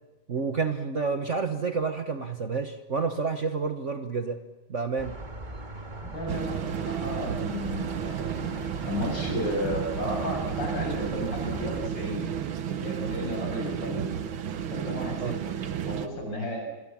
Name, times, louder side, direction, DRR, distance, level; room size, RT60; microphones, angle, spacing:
voice 1, 0.3-4.4 4.7-5.1 15.2-15.4, right 4 dB, 45° right, 8 dB, 1.3 m, -29 dB
sound 1, 5.0-11.9, right 2 dB, 25° right, 2.1 m, -39 dB
voice 2, 6.0-8.4 8.8-12.2 12.7-14.1 14.7-15.4 15.9-16.7, equal, 65° left, 1 dB, 8.4 m, -33 dB
sound 2, 6.3-16.1, right 8 dB, 85° right, 2.1 m, -32 dB
27.0 x 22.5 x 7.4 m, 1.1 s
omnidirectional pair, 2.2 m